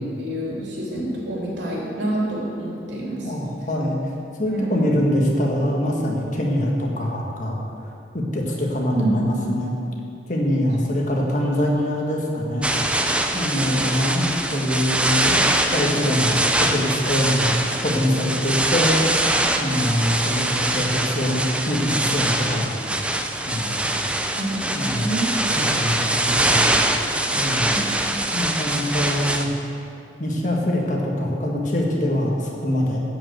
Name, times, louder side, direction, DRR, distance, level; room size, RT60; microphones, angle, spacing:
voice 1, 0.2-3.3 4.5-4.9 8.9-9.3 13.0-14.4 24.4-25.2 27.7-27.8, right 1 dB, 75° right, -3 dB, 2.8 m, -28 dB
voice 2, 3.2-4.0 4.4-7.5 8.1-9.7 10.3-12.7 13.3-14.3 14.5-15.4 15.7-22.8 23.5-23.9 24.7-25.1 25.5-26.7 27.3-27.7 28.3-29.5 30.2-33.0, equal, 40° left, -1 dB, 1.5 m, -24 dB
sound 1, 12.6-29.4, right 1 dB, 5° right, 0.4 m, -23 dB
12.5 x 5.3 x 7.9 m, 2.6 s
head